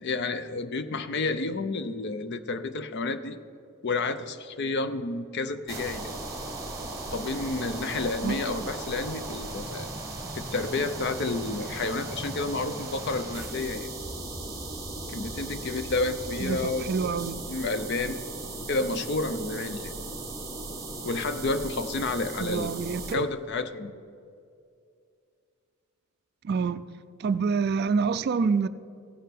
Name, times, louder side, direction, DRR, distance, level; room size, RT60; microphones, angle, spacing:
voice 1, 0.0-3.4 3.8-6.1 7.1-9.9 10.4-13.9 15.1-17.1 17.5-18.2 18.7-19.9 21.0-22.7 23.1-23.9, left 3 dB, 55° left, 0.5 m, -30 dB
sound 1, 5.7-23.1, right 2 dB, 15° right, 1.4 m, -37 dB
voice 2, 8.2-8.7 16.4-17.4 22.4-23.2 26.4-26.8 27.2-28.7, right 5 dB, 50° right, 0.3 m, -27 dB
16.0 x 5.6 x 5.7 m
head